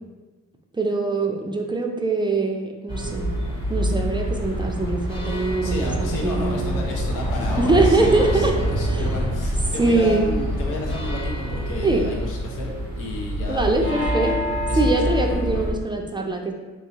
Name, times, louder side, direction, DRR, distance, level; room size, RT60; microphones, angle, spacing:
voice 1, 0.7-3.3 3.7-6.8 7.6-8.5 8.9-9.1 9.8-10.2 11.8-12.0 13.5-14.3 14.8-16.5, right 3 dB, 15° right, 1 dB, 0.4 m, -22 dB
sound 1, 2.9-15.7, equal, 15° left, 0.9 m, -26 dB
voice 2, 5.2-14.3 14.7-15.6, left 2 dB, 85° left, -1 dB, 0.9 m, -33 dB
3.0 x 2.7 x 3.9 m, 1.2 s
cardioid pair, 90°, 30 cm